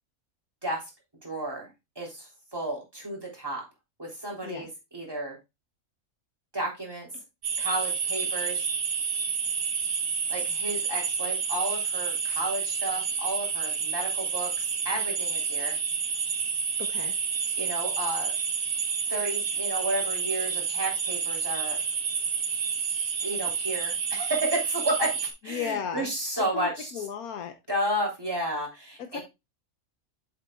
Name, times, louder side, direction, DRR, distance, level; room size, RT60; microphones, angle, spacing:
voice 1, 1.2-1.7 1.9-3.6 4.0-5.4 6.5-7.1 7.6-8.7 10.3-15.8 17.6-18.3 19.1-21.8 23.2-27.0 27.7-29.2, right 1 dB, 15° right, 3.2 m, -32 dB
sound 1, 7.4-25.3, right 6 dB, 85° right, 1.8 m, -29 dB
voice 2, 16.8-17.1 25.5-26.1 26.5-27.5 29.1-29.2, left 8 dB, 85° left, 1.3 m, -34 dB
7.8 x 7.6 x 2.3 m
omnidirectional pair, 1.5 m